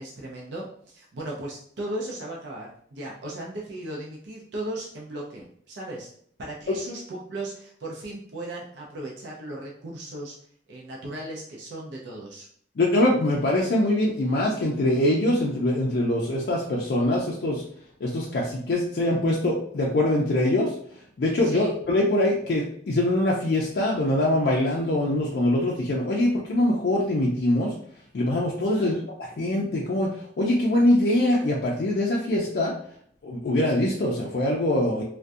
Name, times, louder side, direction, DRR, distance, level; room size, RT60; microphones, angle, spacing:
voice 1, 0.0-6.1 6.4-10.3 10.7-12.5 21.4-21.7 28.7-29.1, right 1 dB, 80° right, -3 dB, 0.5 m, -36 dB
voice 2, 12.8-17.6 18.0-20.7 21.2-27.7 28.1-28.9 29.4-32.7 33.2-35.0, left 1 dB, 60° left, -3 dB, 0.4 m, -23 dB
2.6 x 2.1 x 2.3 m, 0.63 s
head